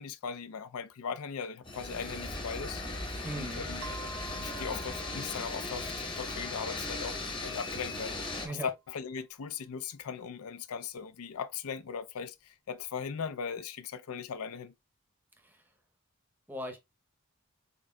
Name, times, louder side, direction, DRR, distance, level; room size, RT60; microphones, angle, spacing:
voice 1, 0.0-2.8 3.4-3.8 4.4-14.7, left 6 dB, 80° left, 0.5 m, -39 dB
sound 1, 1.6-8.5, left 2 dB, 20° left, 0.8 m, -37 dB
voice 2, 3.2-3.7 8.4-8.7 15.4-15.7 16.5-16.8, right 1 dB, 10° right, 0.6 m, -39 dB
sound 2, 3.8-8.2, right 4 dB, 65° right, 0.5 m, -50 dB
4.4 x 3.7 x 2.2 m
head